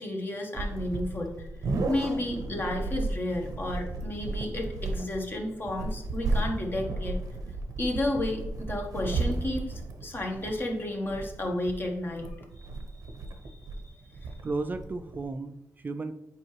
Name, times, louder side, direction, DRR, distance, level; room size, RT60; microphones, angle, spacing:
voice 1, 0.0-1.5 1.9-7.2 7.8-12.7 13.4-13.8 14.1-14.4, left 1 dB, 35° left, 1 dB, 1.3 m, -32 dB
sound 1, 0.5-15.3, right 2 dB, 85° right, 0.8 m, -34 dB
voice 2, 14.4-16.1, right 3 dB, 30° right, 8 dB, 0.4 m, -34 dB
7.6 x 4.7 x 3.2 m, 0.86 s
cardioid pair, 100°, 6 cm